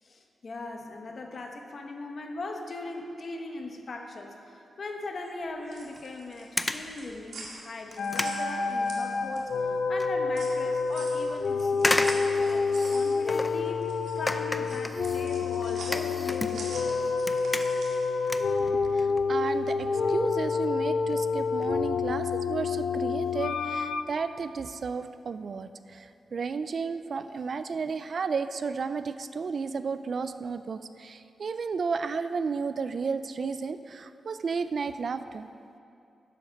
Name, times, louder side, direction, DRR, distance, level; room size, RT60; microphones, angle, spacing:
voice 1, 0.0-13.9 14.1-17.0, left 2 dB, 45° left, 3 dB, 1.1 m, -40 dB
sound 1, 5.5-9.6 10.0-18.1, right 3 dB, 75° right, 2.1 m, -45 dB
sound 2, 6.0-6.1 6.6-7.0 7.4-7.5 7.9-9.3 9.6-10.1 10.5-10.6 11.8-13.7 14.3-16.9 17.1-18.0 18.2-19.2 19.5-19.7 20.4-20.5 20.8-20.9 21.1-21.2 21.5-21.7 22.1-22.3 22.5-22.6, left 1 dB, 15° left, 0.4 m, -33 dB
sound 3, 8.0-24.0, left 4 dB, 75° left, 0.5 m, -28 dB
voice 2, 18.6-35.5, right 5 dB, 50° right, 11 dB, 0.3 m, -33 dB
11.5 x 8.0 x 5.2 m, 2.7 s
wide cardioid pair, 120°, 0 cm